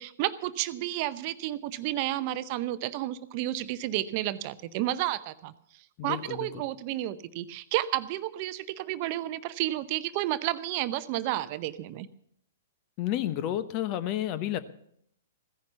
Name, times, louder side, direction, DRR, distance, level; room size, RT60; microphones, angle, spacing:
voice 1, 0.0-5.5 6.0-12.1, right 15 dB, 40° right, 14 dB, 0.7 m, -31 dB
voice 2, 6.0-6.6 13.0-14.6, left 12 dB, 35° left, 14 dB, 1.0 m, -31 dB
15.5 x 10.5 x 6.9 m, 0.70 s
figure-of-eight pair, 110°, 0 cm